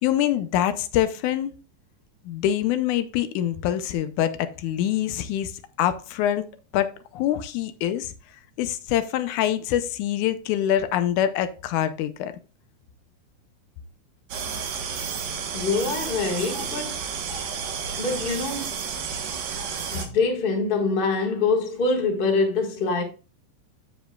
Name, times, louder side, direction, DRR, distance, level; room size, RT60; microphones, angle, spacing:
voice 1, 0.0-1.5 2.3-5.5 5.8-6.5 6.7-8.1 8.6-12.3, left 11 dB, 80° left, 2.1 m, -25 dB
sound 1, 14.3-20.1, right 6 dB, 80° right, 2.7 m, -31 dB
voice 2, 15.5-17.0 18.0-18.7 19.9-23.0, left 4 dB, 30° left, 1.0 m, -24 dB
14.0 x 5.1 x 2.3 m
omnidirectional pair, 3.5 m